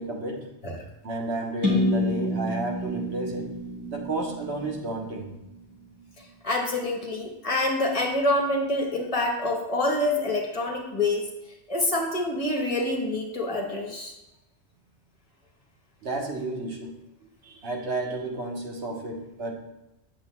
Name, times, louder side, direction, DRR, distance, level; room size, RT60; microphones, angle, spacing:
voice 1, 0.0-0.5 1.0-3.5 3.9-5.3 16.0-16.9 17.4-19.5, right 2 dB, 70° right, 0 dB, 1.3 m, -32 dB
sound 1, 1.6-5.5, left 1 dB, 15° right, 1.3 m, -29 dB
voice 2, 6.4-11.2 11.7-14.1, left 2 dB, 35° left, 0 dB, 1.1 m, -26 dB
7.8 x 7.0 x 2.2 m, 0.94 s
omnidirectional pair, 1.2 m